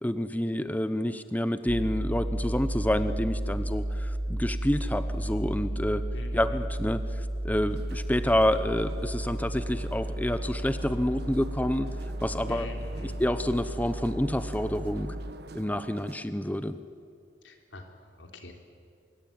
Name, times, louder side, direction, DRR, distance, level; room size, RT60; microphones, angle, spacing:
voice 1, 0.0-6.0 6.3-11.9 12.2-12.7 13.0-15.1 15.5-16.8, left 1 dB, 10° left, 11 dB, 0.8 m, -28 dB
sound 1, 1.7-15.3, right 1 dB, 25° right, 1.0 m, -33 dB
voice 2, 6.1-6.7 12.5-13.2 17.4-18.5, left 1 dB, 90° left, 4 dB, 3.6 m, -45 dB
sound 2, 7.7-16.2, right 2 dB, 60° right, 1.3 m, -47 dB
24.5 x 23.0 x 9.3 m, 2.4 s
head